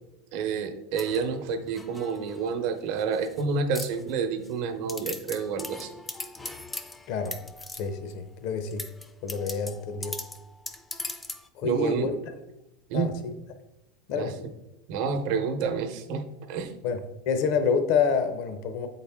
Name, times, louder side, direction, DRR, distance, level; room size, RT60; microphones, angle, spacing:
voice 1, 0.3-5.9 11.6-12.1 12.9-13.1 14.1-14.3 14.9-16.7, right 5 dB, 60° right, 7 dB, 0.8 m, -29 dB
sound 1, 1.0-2.5 3.0-3.4 3.7-4.5 4.9-8.1 8.7-11.5, left 2 dB, 10° left, 0.4 m, -40 dB
voice 2, 7.7-8.8 9.2-10.2 11.6-12.1 12.9-13.3 14.1-14.3 16.8-17.0 17.3-18.9, left 6 dB, 60° left, 8 dB, 0.6 m, -27 dB
7.9 x 4.1 x 3.5 m, 0.93 s
supercardioid pair, 140°, 0 cm